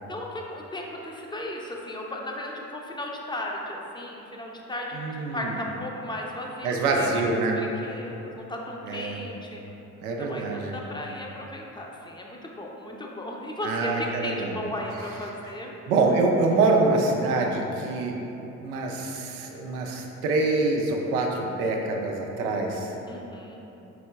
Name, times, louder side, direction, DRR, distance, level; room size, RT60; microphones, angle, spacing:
voice 1, 0.1-5.1 5.3-7.3 7.6-9.6 10.2-15.7 23.1-23.6, left 1 dB, 10° left, -1 dB, 0.6 m, -35 dB
voice 2, 4.9-5.6 6.6-7.6 8.9-9.2 10.0-10.8 13.6-14.6 15.9-18.1 18.6-22.9, right 3 dB, 85° right, 1 dB, 0.5 m, -25 dB
4.4 x 4.1 x 2.2 m, 3.0 s
hypercardioid pair, 45°, 43 cm